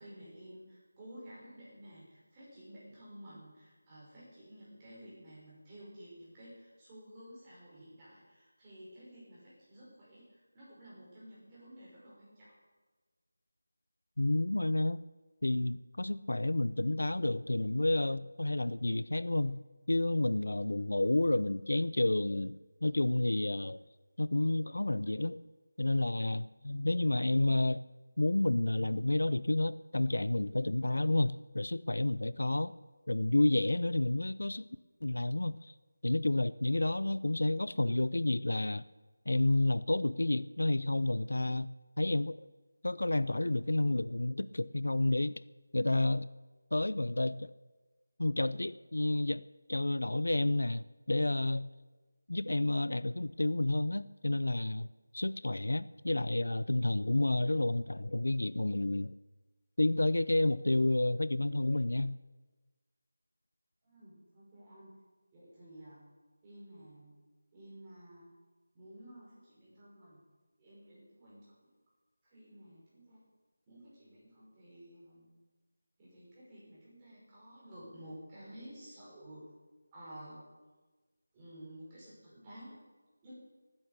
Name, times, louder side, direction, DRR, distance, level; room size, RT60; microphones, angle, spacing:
voice 1, 0.0-12.6 63.8-64.9 65.3-66.0 66.4-67.1 67.5-68.3 68.7-70.2 70.6-71.7 72.2-73.3 73.7-75.3 76.0-79.5 79.9-80.4 81.3-82.8 83.2-83.3, equal, 15° right, 5.8 m, -52 dB
voice 2, 14.2-15.0 15.4-19.6 19.9-23.8 24.2-25.4 25.8-27.8 28.2-32.7 33.1-34.7 35.0-35.7 36.0-38.8 39.3-42.4 42.8-45.3 45.7-46.3 46.7-47.5 48.2-49.4 49.7-51.7 52.3-54.9 55.1-59.1 59.8-62.2, left 2 dB, 85° left, 0.6 m, -30 dB
18.0 x 9.9 x 6.9 m
figure-of-eight pair, 175°, 0 cm